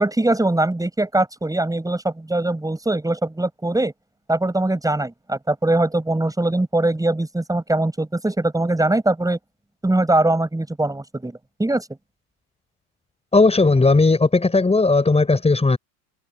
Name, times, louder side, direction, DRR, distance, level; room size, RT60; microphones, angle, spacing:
voice 1, 0.0-3.9 4.3-9.4 9.8-11.9, right 2 dB, 10° right, 7.6 m, -21 dB
voice 2, 13.3-15.8, left 3 dB, 15° left, 6.1 m, -16 dB
supercardioid pair, 100°, 45 cm